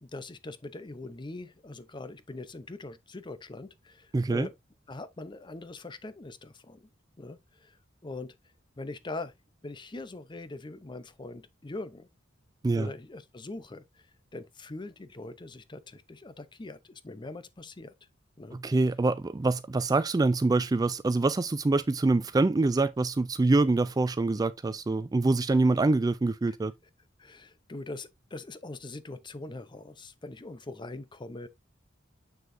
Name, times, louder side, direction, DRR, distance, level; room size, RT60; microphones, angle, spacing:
voice 1, 0.0-4.5 4.9-6.9 7.2-7.8 8.0-8.4 8.8-9.3 9.6-12.1 12.7-14.1 14.3-17.9 18.4-18.6 26.5-26.6 27.2-31.5, left 2 dB, 25° left, 0.6 m, -42 dB
voice 2, 4.1-4.5 12.6-12.9 18.5-26.7, right 3 dB, 20° right, 0.3 m, -25 dB
7.1 x 6.4 x 2.6 m
head